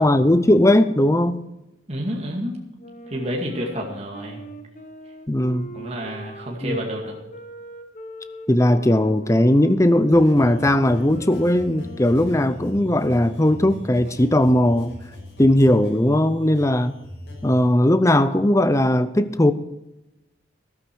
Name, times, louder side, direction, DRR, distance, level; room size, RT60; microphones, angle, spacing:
voice 1, 0.0-1.4 5.3-5.7 6.6-6.8 8.5-14.9 15.4-16.9 17.4-19.5, left 1 dB, 15° left, 12 dB, 0.7 m, -18 dB
voice 2, 1.9-2.6 3.1-4.4 5.7-7.2, equal, 35° right, -1 dB, 2.3 m, -29 dB
Wind instrument woodwind instrument, 2.8-12.8, equal, 40° left, 1.3 m, -41 dB
sound 1, 10.1-17.6, left 1 dB, 60° left, 5.9 m, -39 dB
14.0 x 12.0 x 4.7 m, 0.96 s
head